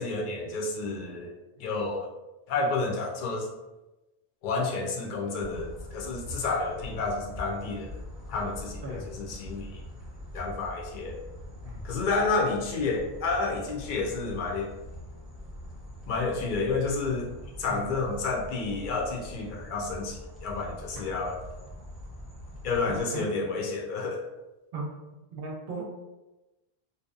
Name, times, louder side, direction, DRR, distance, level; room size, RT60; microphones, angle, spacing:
voice 1, 0.0-1.3 1.6-2.1 2.5-3.5 4.4-8.0 8.3-9.8 10.3-11.2 11.8-14.7 16.1-17.3 17.6-21.4 22.6-24.2, left 3 dB, 60° left, -1 dB, 0.6 m, -30 dB
sound 1, 5.4-23.0, left 1 dB, ahead, 0.5 m, -43 dB
voice 2, 25.3-25.8, right 2 dB, 70° right, -1 dB, 0.8 m, -36 dB
2.7 x 2.0 x 2.4 m, 1.0 s
omnidirectional pair, 1.0 m